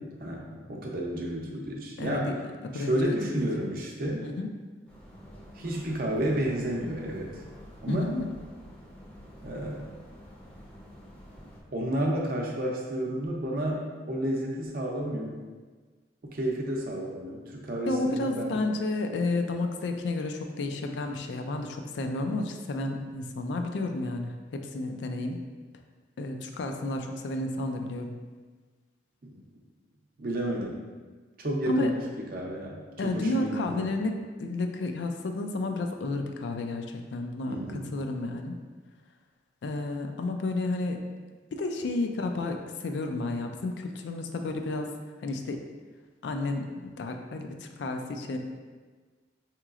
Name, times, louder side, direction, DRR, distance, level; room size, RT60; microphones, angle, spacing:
voice 1, 0.0-2.3 2.7-4.3 5.6-7.4 7.8-8.1 9.4-9.8 11.7-15.3 16.3-18.6 29.2-29.4 30.2-30.8 31.4-32.0 32.3-33.9 37.5-37.9, right 1 dB, 55° right, -1 dB, 0.6 m, -31 dB
voice 2, 2.0-2.3 2.6-3.7 4.2-4.5 7.9-8.3 17.9-25.4 26.2-28.2 31.7-31.9 33.0-38.5 39.6-41.0 41.5-44.9 45.2-45.6 46.2-46.7 47.0-48.4, left 2 dB, 75° left, 4 dB, 0.4 m, -31 dB
sound 1, 4.9-11.6, equal, 5° left, 0.6 m, -48 dB
4.8 x 2.9 x 2.4 m, 1.4 s
head